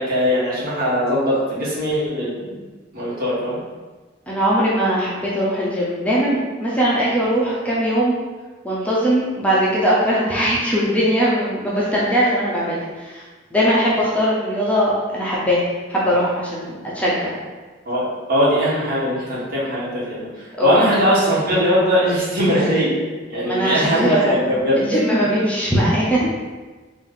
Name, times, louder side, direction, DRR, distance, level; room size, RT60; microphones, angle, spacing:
voice 1, 0.0-2.5 2.9-3.6 17.9-18.0 18.3-20.3 20.6-23.0 23.3-24.8, equal, 50° right, -8 dB, 1.4 m, -20 dB
voice 2, 4.3-8.2 8.6-13.2 13.5-17.3 20.6-20.8 23.4-24.4 24.8-26.3, equal, 5° left, -7 dB, 0.7 m, -20 dB
4.0 x 2.6 x 3.7 m, 1.3 s
head